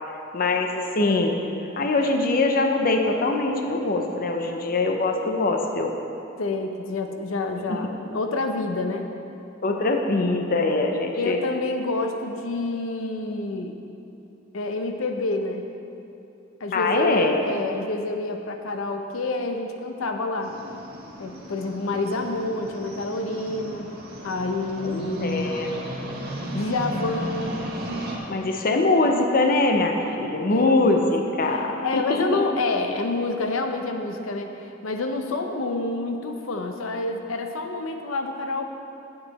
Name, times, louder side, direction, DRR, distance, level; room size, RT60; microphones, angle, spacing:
voice 1, 0.3-1.4 1.8-5.9 7.7-7.8 9.6-11.4 16.7-17.4 24.8-25.7 28.3-32.5, left 2 dB, 45° left, 3 dB, 0.6 m, -23 dB
voice 2, 6.4-9.1 11.2-13.7 14.5-15.6 16.6-20.6 21.2-23.9 24.2-25.6 26.5-27.6 30.5-31.1 31.4-38.7, left 2 dB, 85° left, 5 dB, 0.6 m, -28 dB
sound 1, 20.4-28.2, right 1 dB, 55° right, 1.4 m, -35 dB
9.2 x 8.4 x 4.1 m, 2.8 s
head